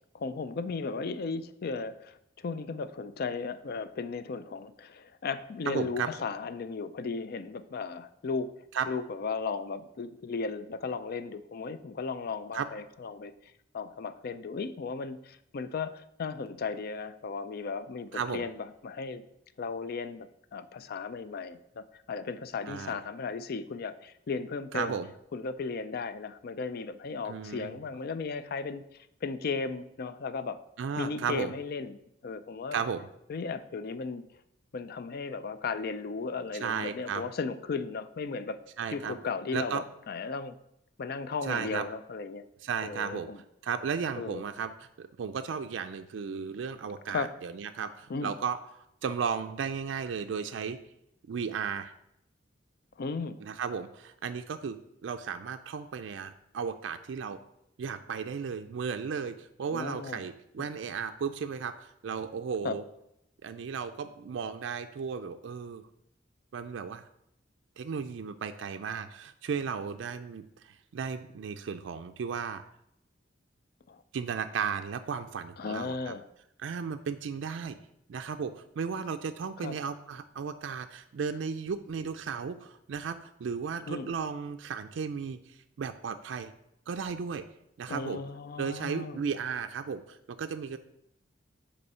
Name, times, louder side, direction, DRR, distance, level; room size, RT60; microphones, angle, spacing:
voice 1, 0.1-2.2 2.4-8.5 8.9-13.3 13.7-19.2 19.6-25.0 25.3-28.8 29.2-30.6 31.0-32.8 33.3-34.2 34.7-38.6 38.9-40.5 41.0-42.4 42.8-43.4 44.2-44.4 47.1-47.3 48.1-48.3 53.0-53.4 59.7-60.2 62.6-62.8 73.9-74.0 75.6-76.3 79.6-79.7 83.9-84.1 87.9-89.2, left 4 dB, 55° left, 12 dB, 0.4 m, -35 dB
voice 2, 5.7-6.1 8.7-8.9 12.5-12.7 18.1-18.5 22.7-23.0 24.7-25.1 27.2-27.8 30.8-31.5 32.7-33.1 36.5-37.2 38.8-39.2 39.5-39.8 41.4-41.9 42.6-43.3 43.6-48.6 49.0-50.8 51.3-51.9 53.4-54.8 55.0-57.4 57.8-62.8 63.4-65.8 66.5-67.0 67.8-72.6 74.1-76.1 76.6-77.8 78.1-86.5 86.9-87.4 87.8-88.2 88.6-90.8, right 6 dB, 70° right, 7 dB, 0.4 m, -35 dB
5.4 x 4.3 x 5.5 m, 0.79 s
head